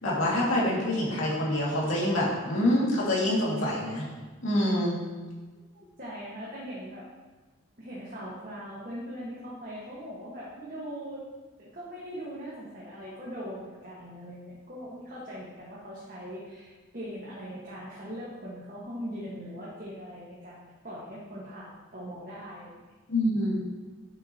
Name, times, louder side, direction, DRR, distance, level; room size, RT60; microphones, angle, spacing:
voice 1, 0.0-4.1 4.4-5.0 23.1-23.6, left 1 dB, 75° left, -5 dB, 2.5 m, -26 dB
voice 2, 5.7-7.0 7.8-11.2 11.6-22.8, equal, 40° right, -8 dB, 1.7 m, -40 dB
10.0 x 7.0 x 3.0 m, 1.3 s
head